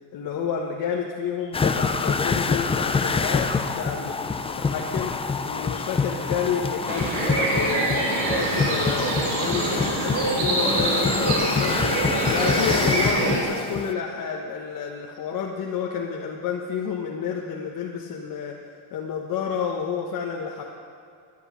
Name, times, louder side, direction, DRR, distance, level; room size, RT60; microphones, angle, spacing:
voice 1, 0.1-5.1 5.4-12.0 12.3-18.5 18.9-20.6, left 7 dB, 45° left, -1 dB, 1.3 m, -30 dB
sound 1, 1.5-13.9, left 4 dB, 15° left, 0.5 m, -26 dB
sound 2, 6.9-13.4, right 2 dB, 60° right, 3.4 m, -25 dB
13.0 x 11.0 x 6.3 m, 2.4 s
cardioid pair, 115°, 46 cm